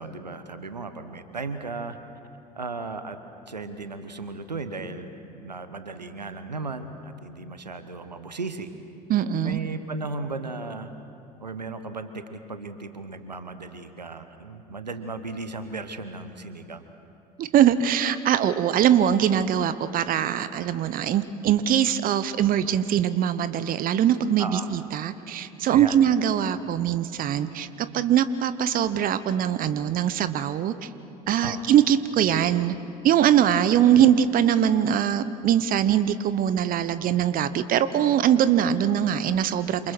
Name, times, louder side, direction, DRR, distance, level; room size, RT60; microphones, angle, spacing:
voice 1, 0.0-2.0 2.6-3.2 3.5-8.7 9.4-10.9 11.4-16.8 24.4-24.7 25.7-26.0 31.4-31.7 33.9-34.0, right 3 dB, 90° right, 10 dB, 1.2 m, -35 dB
voice 2, 9.1-9.6 17.4-30.9 31.3-32.7 33.0-39.9, right 10 dB, 45° right, 14 dB, 1.1 m, -22 dB
28.0 x 27.5 x 6.2 m, 2.7 s
figure-of-eight pair, 65°, 21 cm